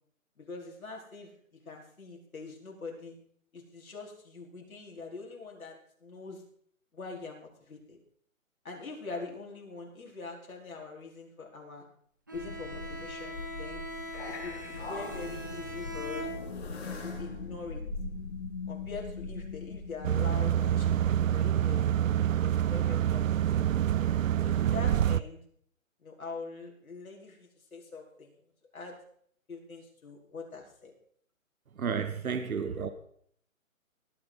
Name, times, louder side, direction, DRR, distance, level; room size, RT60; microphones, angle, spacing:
voice 1, 0.4-1.3 1.6-3.1 3.5-6.4 6.9-8.0 8.6-11.8 12.3-13.8 14.3-16.3 17.0-17.8 18.7-22.1 22.4-23.7 24.4-25.4 26.0-28.3 28.7-29.0 29.5-30.9, left 4 dB, 85° left, 0 dB, 4.9 m, -43 dB
sound 1, 12.3-20.6, left 3 dB, 45° left, 7.1 m, -40 dB
Bowed string instrument, 12.3-16.9, equal, 15° right, 0.7 m, -41 dB
sound 2, 20.0-25.2, right 10 dB, 70° right, 0.5 m, -26 dB
voice 2, 31.7-32.9, right 6 dB, 85° right, 10 dB, 1.3 m, -32 dB
19.0 x 9.0 x 4.2 m, 0.63 s
hypercardioid pair, 175°, 41 cm